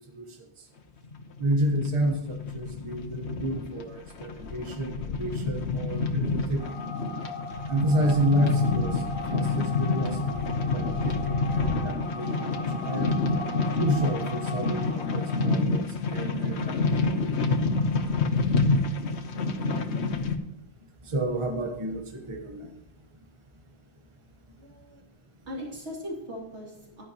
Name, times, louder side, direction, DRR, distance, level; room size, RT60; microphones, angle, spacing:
sound 1, 1.0-20.4, left 3 dB, 80° left, 1.1 m, -28 dB
voice 1, 1.4-6.7 7.7-9.0 9.3-12.5 12.8-13.1 13.8-16.8 21.1-22.7, equal, 30° right, 2 dB, 1.2 m, -29 dB
sound 2, 6.6-15.5, left 3 dB, 30° left, 1.3 m, -39 dB
voice 2, 24.6-25.0 25.5-27.0, equal, 85° right, -3 dB, 3.1 m, -39 dB
11.5 x 9.9 x 3.0 m, 0.82 s
omnidirectional pair, 1.1 m